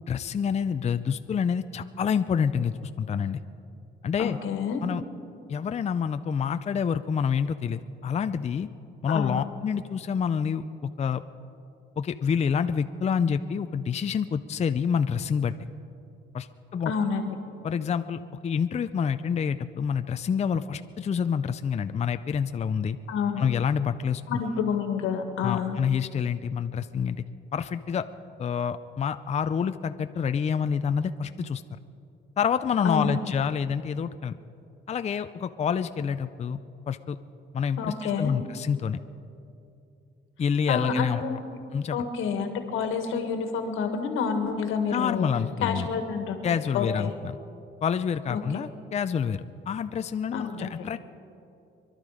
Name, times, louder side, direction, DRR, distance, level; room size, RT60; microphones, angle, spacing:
voice 1, 0.1-3.4 4.0-4.4 4.8-5.0 5.5-8.7 9.0-11.2 12.0-15.5 16.3-16.5 16.7-16.9 17.6-23.0 23.4-24.4 25.4-27.2 27.5-28.0 28.4-31.6 32.4-34.4 34.9-36.6 36.9-37.2 37.5-39.0 40.4-41.2 41.7-42.0 44.9-45.9 46.4-47.4 47.8-51.1, left 7 dB, 35° left, 10 dB, 0.5 m, -27 dB
voice 2, 4.2-4.8 9.1-9.4 16.8-17.4 23.1-23.4 24.3-25.8 32.8-33.3 37.8-38.3 40.7-41.6 41.9-45.3 45.6-47.1 48.3-48.4 50.3-50.7, left 6 dB, 90° left, 6 dB, 1.7 m, -29 dB
24.5 x 11.5 x 5.0 m, 2.7 s
cardioid pair, 90°, 20 cm